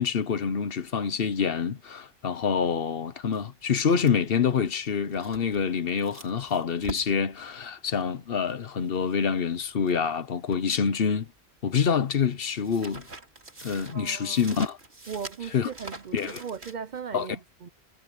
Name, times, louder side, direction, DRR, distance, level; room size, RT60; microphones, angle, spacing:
voice 1, 0.0-11.3 11.6-13.1 13.6-14.8 15.5-15.7 16.1-16.4 17.1-17.3, left 6 dB, 60° left, 1.1 m, -26 dB
sound 1, 3.3-10.0 10.3-11.4 11.7-17.0, right 2 dB, 80° right, 3.8 m, -45 dB
voice 2, 13.9-14.4 15.1-17.7, right 7 dB, 50° right, 0.7 m, -38 dB
omnidirectional pair, 1.1 m